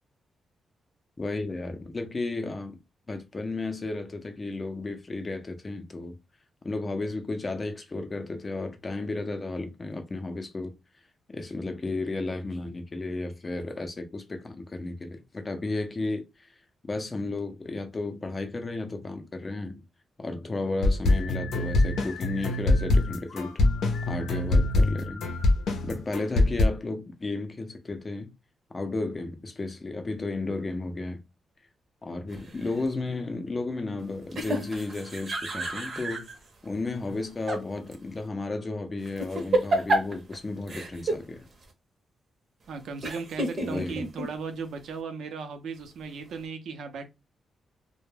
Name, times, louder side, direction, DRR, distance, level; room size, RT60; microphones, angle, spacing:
voice 1, 1.2-2.8 3.1-6.1 6.6-10.7 11.3-16.5 16.8-19.8 20.2-23.6 24.1-25.3 25.8-28.3 28.7-31.2 32.0-36.3 36.6-41.4 43.6-44.0, left 2 dB, 30° left, 0.5 m, -33 dB
sound 1, 20.8-26.7, left 2 dB, 85° left, 0.6 m, -24 dB
sound 2, 32.3-32.8 34.3-36.4 37.1-37.6 37.9-38.0 39.0-40.4 40.7-41.2 41.6-41.7 43.0-44.3, right 1 dB, 50° right, 0.7 m, -30 dB
voice 2, 42.7-47.1, right 5 dB, 80° right, 0.6 m, -36 dB
2.1 x 2.1 x 3.1 m
cardioid pair, 110°, 0 cm